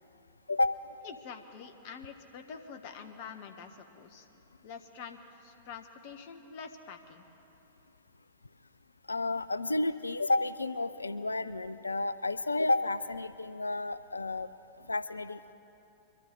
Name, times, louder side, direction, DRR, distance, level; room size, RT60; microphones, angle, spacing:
voice 1, 1.0-4.3 4.6-7.2, left 6 dB, 45° left, 6 dB, 1.2 m, -46 dB
voice 2, 9.1-14.5 14.9-15.5, left 2 dB, 80° left, 13 dB, 0.4 m, -31 dB
24.0 x 12.0 x 3.9 m, 2.8 s
figure-of-eight pair, 95°, 0 cm